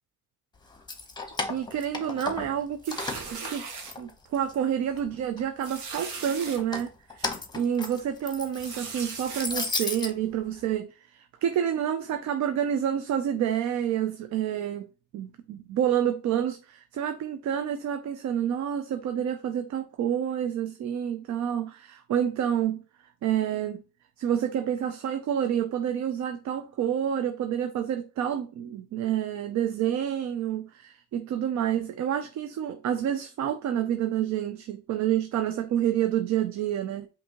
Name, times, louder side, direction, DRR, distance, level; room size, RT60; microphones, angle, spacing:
Keys jangling, 0.7-2.6 2.9-4.5 4.9-5.7 6.5-10.1, left 3 dB, 15° left, 0.8 m, -34 dB
voice 1, 1.5-3.1 3.3-3.7 4.0-14.9 15.1-22.8 23.2-23.8 24.2-37.1, right 9 dB, 70° right, 0.5 m, -28 dB
sound 1, 2.8-3.9 4.5-4.7 5.0-5.1 5.6-6.6 7.2-7.3 8.5-9.5, right 5 dB, 90° right, 1.0 m, -38 dB
5.2 x 2.7 x 2.9 m
cardioid pair, 95°, 30 cm